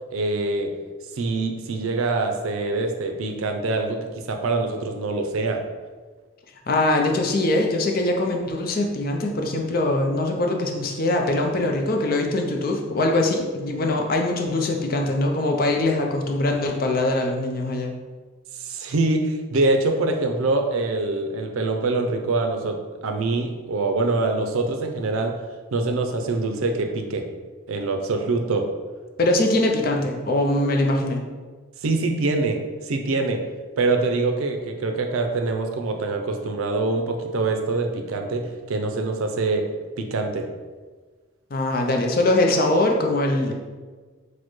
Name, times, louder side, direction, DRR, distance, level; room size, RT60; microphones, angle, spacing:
voice 1, 0.1-0.7 1.2-5.6 18.6-25.4 25.7-27.3 27.7-28.7 31.8-32.6 32.8-33.4 33.8-39.7 40.0-40.5, right 3 dB, 85° right, 4 dB, 0.5 m, -24 dB
voice 2, 6.7-17.9 29.2-31.2 41.5-43.5, left 2 dB, 45° left, 2 dB, 0.5 m, -22 dB
6.3 x 2.1 x 3.0 m, 1.4 s
head